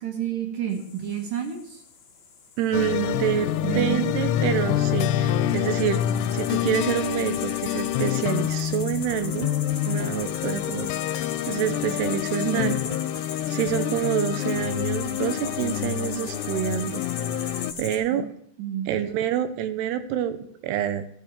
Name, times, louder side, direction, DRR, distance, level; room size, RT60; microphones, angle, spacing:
voice 1, 0.0-1.8 3.6-4.1 12.5-12.7 18.1-18.2 18.6-18.9, right 8 dB, 60° right, 4 dB, 2.5 m, -29 dB
sound 1, 0.7-18.0, left 5 dB, 60° left, 1.2 m, -40 dB
voice 2, 2.6-3.5 3.8-6.0 6.3-9.5 9.9-10.9 11.1-12.8 13.5-17.0 17.4-17.5 17.8-18.3 18.9-20.4 20.6-21.1, right 10 dB, 75° right, 11 dB, 2.7 m, -27 dB
sound 2, 2.7-17.7, left 11 dB, 85° left, 2.7 m, -27 dB
12.5 x 6.3 x 7.2 m, 0.67 s
omnidirectional pair, 5.0 m